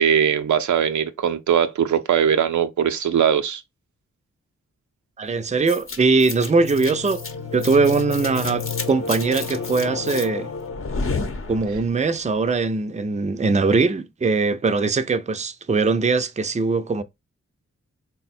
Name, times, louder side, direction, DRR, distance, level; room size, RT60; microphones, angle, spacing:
voice 1, 0.0-3.6, right 8 dB, 75° right, 0.5 m, -20 dB
voice 2, 5.2-7.2 7.5-10.5 11.5-17.0, right 4 dB, 25° right, 0.5 m, -21 dB
sound 1, 5.7-12.0, left 4 dB, 45° left, 0.8 m, -30 dB
3.5 x 2.2 x 4.2 m
cardioid pair, 40°, 30 cm